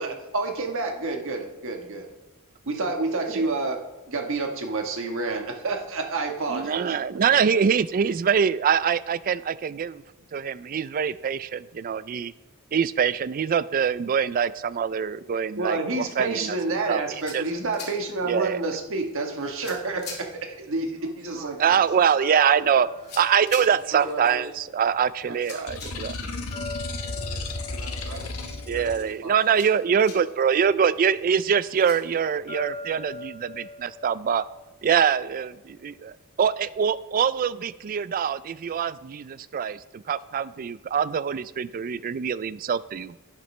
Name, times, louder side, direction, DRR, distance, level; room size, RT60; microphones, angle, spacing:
voice 1, 0.0-2.1 2.7-6.9 15.5-21.6, right 3 dB, 60° right, 3 dB, 1.4 m, -29 dB
voice 2, 6.5-10.0 10.3-12.3 12.7-16.6 16.9-17.0 17.3-17.4 18.2-18.7 21.6-22.9 23.2-26.1 28.7-34.4 34.8-43.2, right 7 dB, 40° right, 17 dB, 0.3 m, -24 dB
sound 1, 16.8-31.9, left 4 dB, 50° left, 2.4 m, -47 dB
voice 3, 21.0-22.8 23.7-24.6 25.3-29.4, right 2 dB, 85° right, 2 dB, 1.7 m, -42 dB
sound 2, 22.2-25.3 26.5-30.0 32.5-35.6, left 3 dB, 25° left, 2.8 m, -42 dB
sound 3, 25.7-29.0, left 3 dB, 70° left, 1.1 m, -33 dB
11.0 x 10.5 x 3.2 m, 1.0 s
head